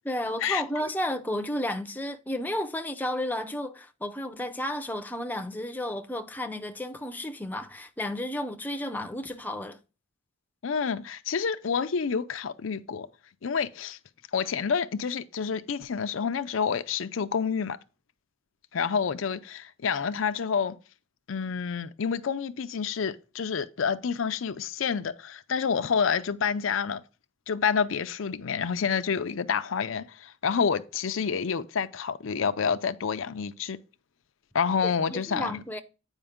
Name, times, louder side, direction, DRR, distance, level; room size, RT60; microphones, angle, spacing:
voice 1, 0.0-9.8 34.8-35.8, left 1 dB, 10° left, 0.6 m, -32 dB
voice 2, 10.6-13.1 13.4-14.0 14.3-17.8 18.7-20.8 21.3-27.0 27.5-33.8 34.5-35.6, left 6 dB, 70° left, 0.5 m, -28 dB
8.9 x 5.1 x 3.6 m
head